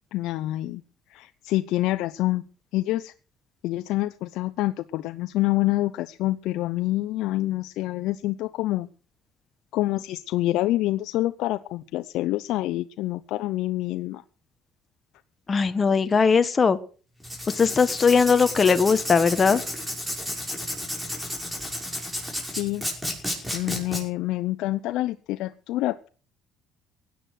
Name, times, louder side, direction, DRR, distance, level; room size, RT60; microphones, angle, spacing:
voice 1, 0.1-0.8 1.1-2.4 2.7-3.1 3.6-8.9 9.7-14.2 22.4-22.9 23.5-26.1, left 16 dB, 75° left, 10 dB, 0.7 m, -27 dB
voice 2, 15.5-16.8 17.5-19.6, left 5 dB, 30° left, 10 dB, 1.2 m, -19 dB
Writing, 17.2-24.0, left 1 dB, 5° right, 5.9 m, -32 dB
16.5 x 9.4 x 6.4 m, 0.39 s
cardioid pair, 115°, 0 cm